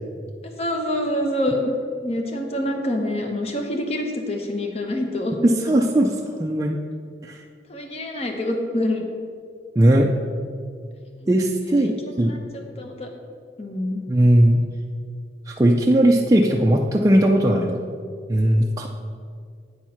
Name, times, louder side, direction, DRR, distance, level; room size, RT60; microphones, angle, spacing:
voice 1, 0.6-1.6 2.0-5.7 7.7-9.0 11.6-11.9 12.2-12.4 12.8-13.1 13.6-14.0, left 1 dB, 35° left, 3 dB, 0.9 m, -26 dB
voice 2, 5.4-6.1 6.4-6.8 7.3-7.4 9.8-10.1 11.3-11.9 12.2-12.4 14.1-14.6 15.5-17.8 18.3-18.9, right 1 dB, 20° right, -1 dB, 0.4 m, -18 dB
8.7 x 4.6 x 5.7 m, 2.2 s
head